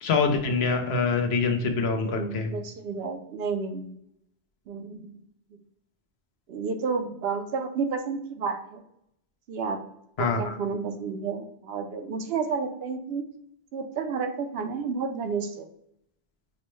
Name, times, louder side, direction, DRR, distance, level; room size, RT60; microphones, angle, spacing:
voice 1, 0.0-2.5 10.2-10.5, left 4 dB, 80° left, 5 dB, 0.9 m, -25 dB
voice 2, 1.9-3.9 4.7-5.2 6.5-8.8 9.5-9.8 10.2-13.2 13.7-15.7, right 5 dB, 75° right, 7 dB, 0.8 m, -31 dB
5.2 x 2.1 x 3.0 m, 0.76 s
omnidirectional pair, 1.0 m